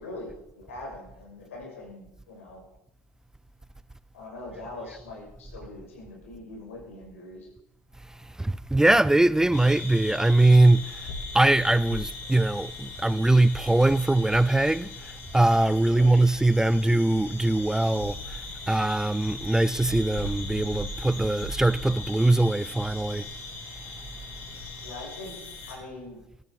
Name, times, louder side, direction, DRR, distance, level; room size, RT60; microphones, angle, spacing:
voice 1, 0.0-2.6 4.1-7.5 15.9-16.1 24.8-25.4 25.7-26.2, left 2 dB, 90° left, 6.6 m, -42 dB
voice 2, 8.4-10.9 11.3-14.9 15.3-18.4 18.7-23.2, right 2 dB, 10° right, 0.4 m, -21 dB
sound 1, 9.5-25.7, left 2 dB, 70° left, 8.0 m, -39 dB
16.5 x 13.0 x 5.4 m
hypercardioid pair, 75°, 7 cm